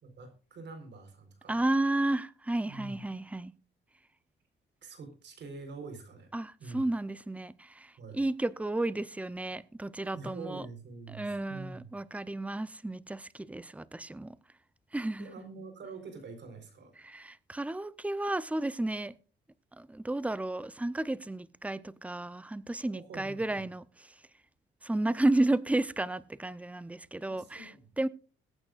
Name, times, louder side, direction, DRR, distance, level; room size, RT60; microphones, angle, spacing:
voice 1, 0.0-1.6 2.7-3.0 4.8-6.3 6.6-6.8 8.0-8.2 10.1-11.9 15.2-16.9 22.9-23.7 27.3-27.9, right 3 dB, 60° right, 4.0 m, -45 dB
voice 2, 1.5-3.5 6.3-10.6 11.1-14.4 14.9-15.3 17.0-19.1 19.8-24.1 24.8-28.1, right 2 dB, 5° right, 0.6 m, -32 dB
21.5 x 9.0 x 2.4 m
cardioid pair, 90°, 20 cm